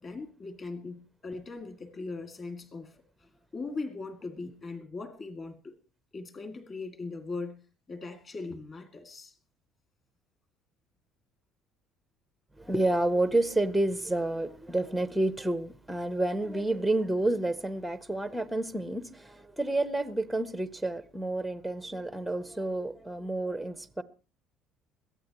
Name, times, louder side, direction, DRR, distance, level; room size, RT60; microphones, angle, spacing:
voice 1, 0.0-3.0 3.5-5.8 6.1-7.6 7.9-9.3, left 3 dB, 25° left, 2.2 m, -39 dB
voice 2, 12.6-24.0, right 2 dB, ahead, 0.6 m, -29 dB
21.5 x 15.0 x 3.0 m
cardioid pair, 175°, 0 cm